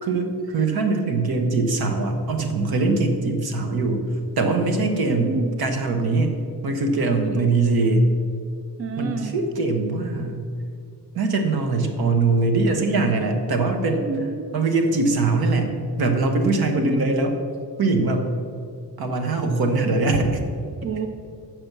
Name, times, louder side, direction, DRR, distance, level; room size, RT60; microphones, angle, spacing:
voice 1, 0.0-4.0 4.4-6.3 6.6-8.1 9.0-10.4 11.1-14.1 14.5-15.7 16.0-17.3 17.8-18.3 19.0-20.4, right 3 dB, 60° right, 5 dB, 1.2 m, -22 dB
voice 2, 5.2-5.5 8.8-9.3 14.1-14.5 16.7-17.0 20.8-21.1, right 5 dB, 35° right, 7 dB, 0.4 m, -28 dB
7.7 x 6.0 x 6.7 m, 2.3 s
wide cardioid pair, 170°, 42 cm